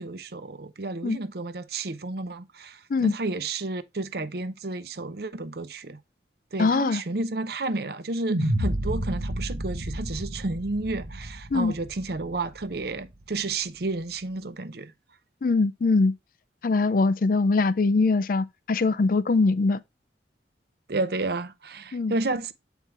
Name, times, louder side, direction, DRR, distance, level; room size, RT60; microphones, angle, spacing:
voice 1, 0.0-6.0 6.5-14.9 20.9-22.5, right 3 dB, 60° right, 0.7 m, -31 dB
voice 2, 6.6-7.0 11.5-11.7 15.4-16.1 16.6-19.8 21.9-22.1, left 3 dB, 50° left, 0.4 m, -22 dB
sound 1, 8.3-12.6, right 1 dB, 80° right, 1.4 m, -30 dB
7.8 x 4.5 x 3.3 m
head